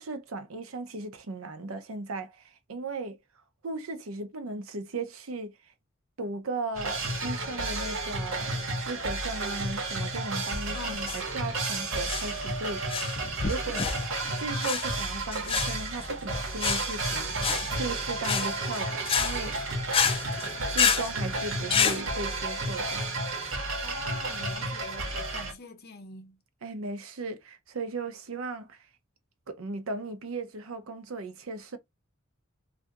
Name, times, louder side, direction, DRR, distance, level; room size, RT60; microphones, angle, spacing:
voice 1, 0.0-3.2 3.6-5.7 6.2-13.2 13.4-13.9 14.3-19.6 20.7-23.1 26.6-28.9 29.5-31.8, right 3 dB, 90° right, 0.7 m, -37 dB
sound 1, 6.7-25.5, right 2 dB, 70° right, 1.2 m, -32 dB
voice 2, 10.7-11.1 23.8-26.4, left 4 dB, 50° left, 0.8 m, -44 dB
sound 2, 10.9-22.0, left 6 dB, 25° left, 0.4 m, -30 dB
2.7 x 2.5 x 3.5 m
head